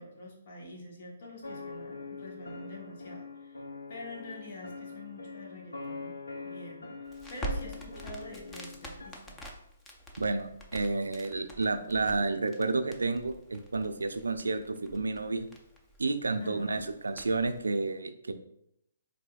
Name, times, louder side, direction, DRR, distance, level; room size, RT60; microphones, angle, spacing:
voice 1, 0.0-6.1 6.4-6.9 7.3-9.4 16.4-16.9, left 1 dB, 55° left, -1 dB, 1.1 m, -46 dB
sound 1, 1.4-9.1, left 4 dB, 85° left, 0.6 m, -43 dB
Crackle, 7.1-17.6, right 1 dB, 10° left, 0.5 m, -45 dB
voice 2, 10.2-15.5 16.0-18.3, right 3 dB, 90° right, 9 dB, 0.3 m, -31 dB
4.1 x 2.6 x 2.3 m, 0.76 s
hypercardioid pair, 140°, 0 cm